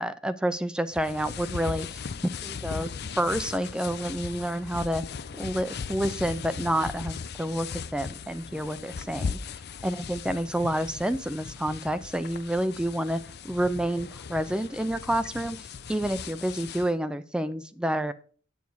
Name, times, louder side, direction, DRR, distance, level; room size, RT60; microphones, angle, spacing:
voice 1, 0.0-2.0 2.4-2.9 3.2-5.0 5.4-9.4 9.8-18.1, right 1 dB, 5° right, 12 dB, 0.5 m, -29 dB
sound 1, 0.9-16.9, left 5 dB, 55° left, 0.5 m, -38 dB
9.4 x 8.1 x 4.7 m, 0.41 s
head